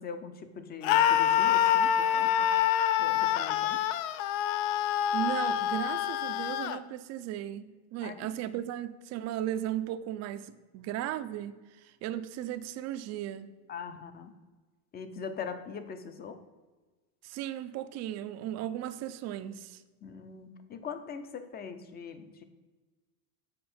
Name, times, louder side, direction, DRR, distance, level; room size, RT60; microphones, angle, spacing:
voice 1, 0.0-2.5 3.0-3.8 8.0-8.6 13.7-14.3 14.9-16.4 20.0-22.4, left 6 dB, 20° left, 10 dB, 0.5 m, -42 dB
Screaming, 0.8-6.8, left 10 dB, 65° left, 0.5 m, -26 dB
voice 2, 5.1-13.5 17.2-19.8, right 12 dB, 40° right, 11 dB, 0.4 m, -36 dB
7.6 x 5.0 x 4.2 m, 1.3 s
supercardioid pair, 130°, 46 cm